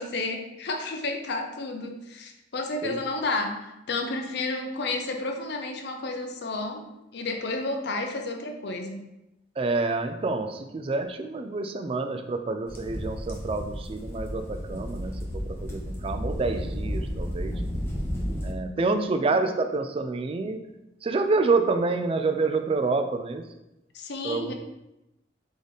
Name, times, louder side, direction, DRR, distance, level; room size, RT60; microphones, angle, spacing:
voice 1, 0.0-6.8 7.1-9.0 18.8-19.1 23.9-24.5, left 2 dB, 60° left, 5 dB, 0.6 m, -31 dB
voice 2, 9.6-17.5 18.4-20.6 21.0-23.4 24.2-24.5, right 3 dB, 30° right, 7 dB, 0.3 m, -28 dB
sound 1, 12.7-18.5, equal, 15° left, 0.7 m, -32 dB
3.9 x 3.7 x 3.4 m, 0.92 s
head